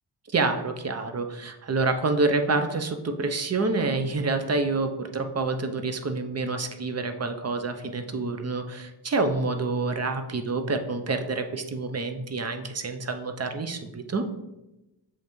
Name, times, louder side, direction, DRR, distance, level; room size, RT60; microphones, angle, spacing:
voice 1, 0.3-14.3, right 3 dB, 35° right, 7 dB, 0.6 m, -27 dB
7.1 x 5.2 x 3.1 m, 0.98 s
wide cardioid pair, 150°, 43 cm